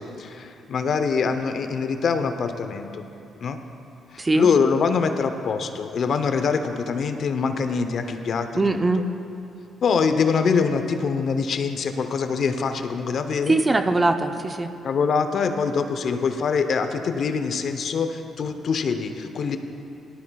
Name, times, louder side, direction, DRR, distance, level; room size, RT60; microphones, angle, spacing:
voice 1, 0.0-3.0 3.4-3.6 4.1-8.8 9.8-13.6 14.8-19.6, left 5 dB, 60° left, 8 dB, 0.7 m, -24 dB
voice 2, 4.2-4.5 8.6-9.0 13.5-14.7, right 2 dB, 20° right, 7 dB, 0.6 m, -21 dB
18.0 x 12.5 x 2.3 m, 2.7 s
cardioid pair, 90°, 0 cm